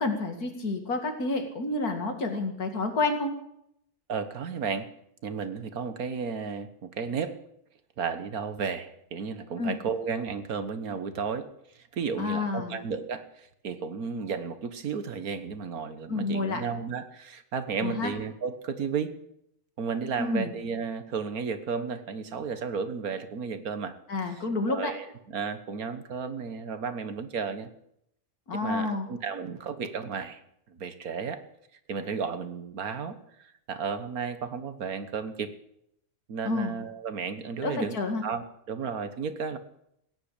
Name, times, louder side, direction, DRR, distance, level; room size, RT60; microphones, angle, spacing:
voice 1, 0.0-3.3 9.6-9.8 12.2-12.8 16.1-16.6 17.8-18.1 20.2-20.5 24.1-24.9 28.5-29.1 36.4-36.7 37.6-38.2, left 3 dB, 80° left, 5 dB, 2.7 m, -29 dB
voice 2, 4.1-4.9 5.2-7.4 8.0-11.5 11.8-19.1 19.8-24.0 24.7-25.1 25.3-27.7 28.5-30.4 30.7-31.4 31.9-35.5 36.3-39.6, right 5 dB, 75° right, 10 dB, 1.8 m, -33 dB
17.0 x 10.5 x 8.3 m, 0.75 s
omnidirectional pair, 1.6 m